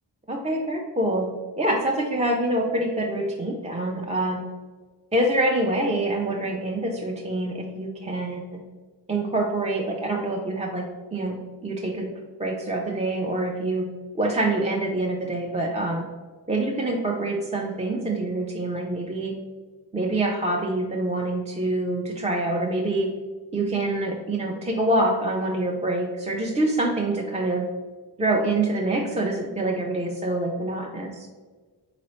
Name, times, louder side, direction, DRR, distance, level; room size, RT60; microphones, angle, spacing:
voice 1, 0.3-1.3 1.6-4.4 5.1-8.4 9.1-10.8 11.1-11.4 11.6-12.1 12.4-13.8 14.2-16.0 16.5-19.3 19.9-23.1 23.5-27.6 28.2-31.3, right 2 dB, 15° right, -1 dB, 0.4 m, -25 dB
3.9 x 2.9 x 3.0 m, 1.4 s
cardioid pair, 50°, 44 cm